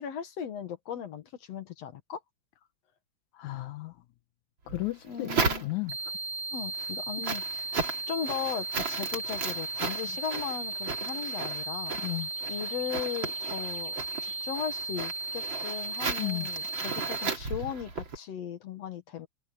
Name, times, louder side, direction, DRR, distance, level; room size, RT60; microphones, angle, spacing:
voice 1, 0.0-2.2 5.0-5.6 6.5-11.9 12.5-14.0 14.2-19.3, left 9 dB, 60° left, 2.3 m, -37 dB
voice 2, 3.3-4.0 4.7-5.9 12.0-12.3 16.2-16.5, left 20 dB, 75° left, 2.1 m, -34 dB
sound 1, 4.7-6.1 6.6-18.2, right 4 dB, 40° right, 3.3 m, -35 dB
sound 2, 5.9-17.3, right 2 dB, 75° right, 3.2 m, -36 dB
omnidirectional pair, 3.6 m